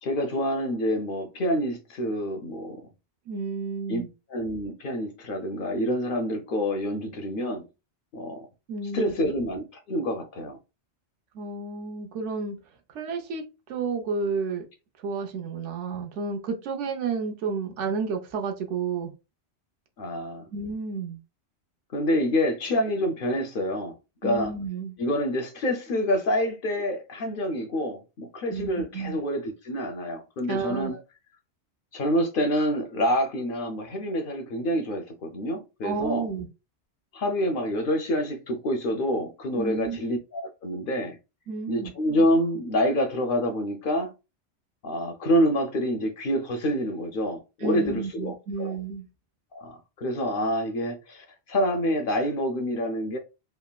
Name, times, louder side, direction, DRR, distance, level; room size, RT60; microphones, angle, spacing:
voice 1, 0.0-2.8 3.9-4.0 4.3-7.6 8.1-8.5 8.9-10.6 20.0-20.5 21.9-24.0 24.2-24.5 25.0-30.9 31.9-36.3 37.1-41.2 41.7-44.1 44.8-48.8 49.5-53.2, equal, 60° left, 0.6 m, -27 dB
voice 2, 3.3-4.1 8.7-9.1 11.3-12.6 12.9-14.6 15.0-19.1 20.5-21.2 24.2-24.9 28.5-29.2 30.5-31.0 35.8-36.5 39.6-40.0 41.5-41.9 47.6-49.1, right 4 dB, 85° right, 1.0 m, -31 dB
3.3 x 2.0 x 2.2 m
omnidirectional pair, 1.2 m